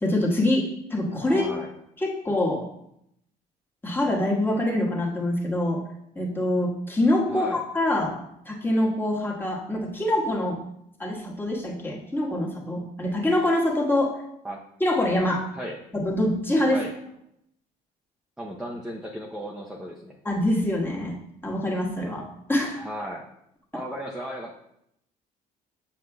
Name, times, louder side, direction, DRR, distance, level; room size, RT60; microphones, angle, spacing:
voice 1, 0.0-1.5 2.0-2.7 3.8-5.8 6.1-8.1 8.5-10.6 11.0-14.1 14.8-15.4 15.9-16.8 20.2-21.2 21.4-22.8, left 1 dB, 10° left, -3 dB, 1.4 m, -25 dB
voice 2, 1.3-1.7 7.3-7.6 14.4-14.6 15.5-15.8 16.7-16.9 18.4-20.2 22.7-23.3 23.7-24.6, equal, 5° right, -2 dB, 0.6 m, -35 dB
7.5 x 6.4 x 2.3 m, 0.77 s
cardioid pair, 110°, 17 cm